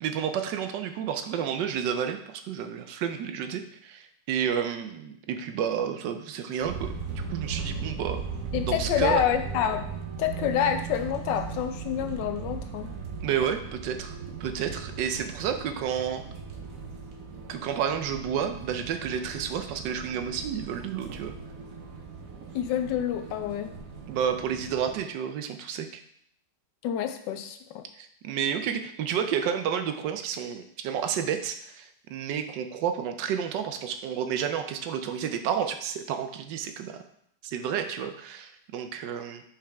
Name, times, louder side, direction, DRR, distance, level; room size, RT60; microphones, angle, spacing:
voice 1, 0.0-8.2 8.6-9.3 13.2-16.2 17.5-21.3 24.1-26.0 28.0-37.0 37.4-39.4, right 8 dB, 80° right, 7 dB, 1.2 m, -31 dB
sound 1, 6.6-25.0, right 5 dB, 55° right, 1.1 m, -38 dB
voice 2, 8.5-9.8 10.2-13.0 22.5-23.7 26.8-27.8, left 10 dB, 80° left, 8 dB, 1.2 m, -28 dB
5.6 x 4.9 x 3.4 m, 0.68 s
omnidirectional pair, 1.9 m